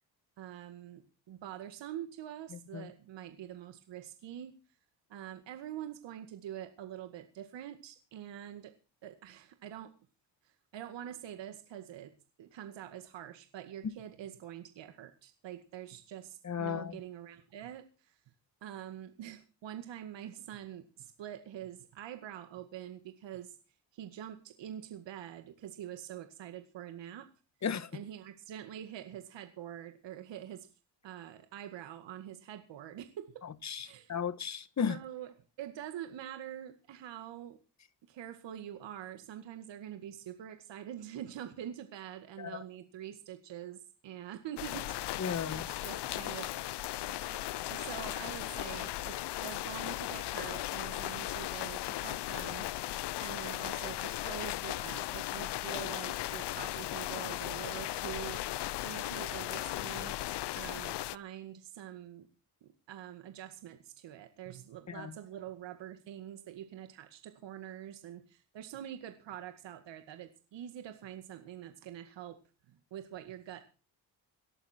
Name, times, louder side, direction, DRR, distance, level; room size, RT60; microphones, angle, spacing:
voice 1, 0.4-4.5 5.1-8.7 9.0-9.9 10.4-18.2 18.6-23.6 23.9-27.3 27.9-30.7 31.0-33.4 33.8-34.1 34.9-37.6 38.1-46.6 47.0-47.4 47.7-52.7 53.2-58.4 58.8-60.2 60.5-62.3 62.6-72.4 72.7-73.7, right 11 dB, 70° right, 2.1 m, -45 dB
voice 2, 16.4-17.0 27.6-28.0 33.6-35.0 42.4-42.6 45.2-45.7 64.9-65.1, left 7 dB, 35° left, 1.6 m, -35 dB
sound 1, 44.6-61.2, left 15 dB, 65° left, 0.7 m, -37 dB
19.0 x 11.5 x 4.5 m
cardioid pair, 80°, 45 cm